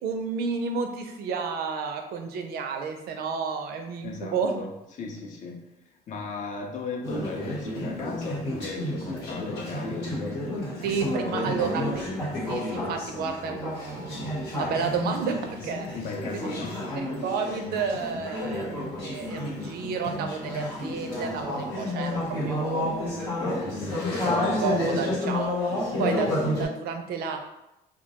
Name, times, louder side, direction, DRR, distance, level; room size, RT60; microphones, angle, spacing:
voice 1, 0.0-4.6 10.8-12.1 12.4-15.9 16.3-16.5 17.0-18.7 19.0-23.2 23.6-24.3 24.6-27.4, right 5 dB, 70° right, 5 dB, 0.4 m, -31 dB
voice 2, 4.0-5.7 6.1-11.6 15.9-16.8, left 4 dB, 45° left, 1 dB, 0.5 m, -37 dB
Conversation / Chatter, 7.0-26.7, left 1 dB, 85° left, 1.1 m, -30 dB
2.2 x 2.1 x 2.8 m, 0.89 s
cardioid pair, 110°, 17 cm